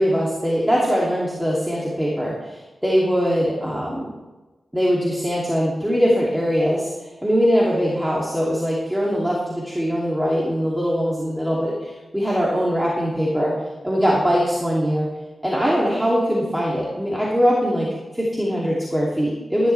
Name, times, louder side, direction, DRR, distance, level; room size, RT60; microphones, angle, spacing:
voice 1, 0.0-4.0 4.7-6.9 7.2-13.5 13.8-15.1 15.4-17.9 18.1-19.7, equal, 5° right, -5 dB, 2.7 m, -21 dB
14.5 x 11.0 x 3.4 m, 1.1 s
cardioid pair, 65°, 0 cm